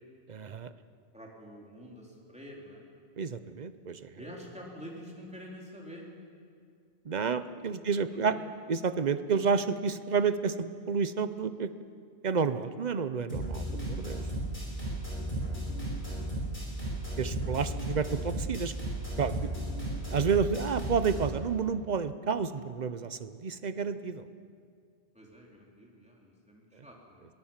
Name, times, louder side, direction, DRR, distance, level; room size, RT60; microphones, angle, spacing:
voice 1, 0.3-0.7 3.2-4.1 7.0-8.4 8.7-11.7 12.2-14.2 17.2-18.7 19.2-19.7 20.1-24.3 26.7-26.8, right 6 dB, 45° right, 12 dB, 0.8 m, -30 dB
voice 2, 1.1-2.8 4.2-6.1 7.1-8.4 14.5-14.6 16.1-16.4 19.9-20.0 25.1-27.3, equal, 5° right, -2 dB, 3.8 m, -48 dB
sound 1, 13.3-21.3, right 1 dB, 45° left, 7.5 m, -35 dB
22.0 x 19.0 x 7.4 m, 2.2 s
omnidirectional pair, 1.2 m